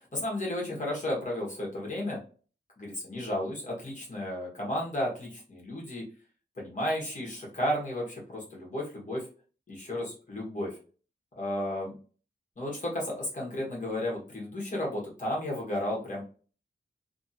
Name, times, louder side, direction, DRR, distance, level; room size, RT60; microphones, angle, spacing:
voice 1, 0.1-2.2 2.8-6.0 6.6-9.3 9.7-10.8 11.4-11.9 12.6-16.2, left 1 dB, 45° left, -4 dB, 1.2 m, -33 dB
2.9 x 2.7 x 2.7 m, 0.39 s
wide cardioid pair, 120°, 18 cm